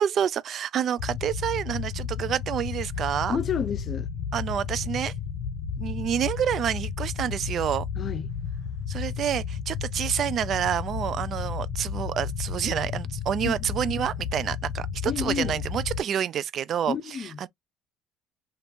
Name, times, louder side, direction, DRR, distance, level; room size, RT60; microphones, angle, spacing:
voice 1, 0.0-3.4 4.3-5.1 5.8-7.9 8.9-17.5, right 9 dB, 45° right, 0.3 m, -28 dB
sound 1, 1.0-16.0, left 6 dB, 75° left, 0.7 m, -33 dB
voice 2, 3.3-4.1 8.0-8.3 13.4-13.6 15.0-15.6 16.9-17.4, left 7 dB, 35° left, 0.5 m, -30 dB
2.9 x 2.5 x 3.4 m
cardioid pair, 125°, 0 cm